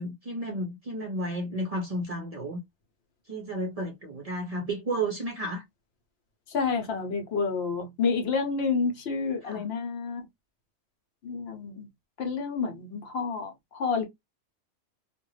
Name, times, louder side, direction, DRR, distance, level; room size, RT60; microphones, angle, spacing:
voice 1, 0.0-2.6 3.3-5.6 9.4-9.6, right 1 dB, 45° right, 0.5 m, -32 dB
voice 2, 6.5-10.3 11.2-11.9 12.2-14.1, left 5 dB, 65° left, 0.9 m, -29 dB
2.4 x 2.2 x 3.0 m
omnidirectional pair, 1.2 m